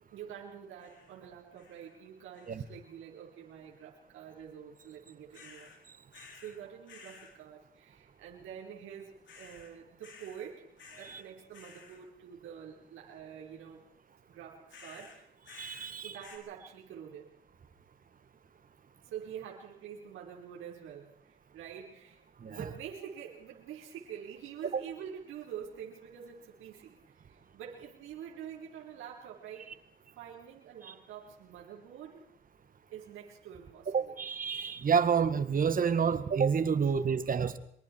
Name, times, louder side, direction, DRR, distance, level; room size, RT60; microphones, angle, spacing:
voice 1, 0.1-5.7 6.3-10.7 10.9-13.8 14.3-15.3 16.0-17.3 19.0-22.2 22.5-29.7 30.2-32.2 32.9-34.2, right 8 dB, 85° right, -2 dB, 4.7 m, -46 dB
sound 1, 0.8-1.2 1.6-2.0 2.3-2.8 5.3-5.8 6.1-6.6 6.9-7.3 9.3-9.7 10.0-10.5 10.8-11.2 11.5-12.0 14.7-15.9 16.2-16.4, left 5 dB, 70° left, 6.4 m, -53 dB
voice 2, 15.5-16.2 22.4-22.7 33.9-37.6, right 6 dB, 45° right, 12 dB, 1.9 m, -29 dB
25.5 x 23.5 x 4.7 m, 0.67 s
cardioid pair, 90°, 20 cm